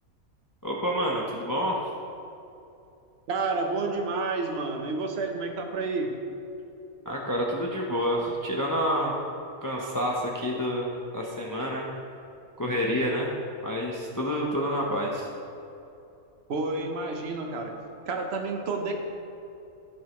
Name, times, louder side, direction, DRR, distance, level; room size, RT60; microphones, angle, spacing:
voice 1, 0.6-1.8 7.0-9.1 9.6-11.9 12.6-13.3 13.6-15.3, equal, 20° left, -2 dB, 0.6 m, -28 dB
voice 2, 3.3-6.1 16.5-17.8 18.0-18.9, right 3 dB, 50° right, 3 dB, 1.1 m, -30 dB
15.0 x 5.4 x 3.1 m, 2.7 s
omnidirectional pair, 1.5 m